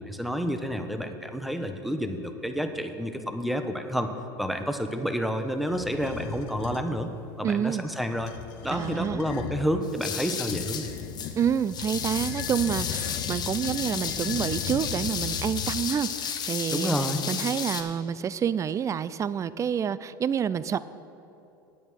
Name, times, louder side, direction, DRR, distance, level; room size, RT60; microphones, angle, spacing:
voice 1, 0.1-4.1 4.4-7.1 7.4-8.3 8.6-10.9 16.7-17.2, equal, ahead, 7 dB, 1.0 m, -29 dB
sound 1, 5.6-6.9 8.1-9.7 10.5-16.0, left 10 dB, 65° left, 0.7 m, -37 dB
voice 2, 7.4-7.9 8.7-9.2 11.4-16.9 17.3-20.8, right 8 dB, 25° right, 17 dB, 0.4 m, -28 dB
sound 2, 9.8-17.8, left 7 dB, 35° left, 1.2 m, -33 dB
8.8 x 8.6 x 6.3 m, 2.8 s
hypercardioid pair, 90°, 12 cm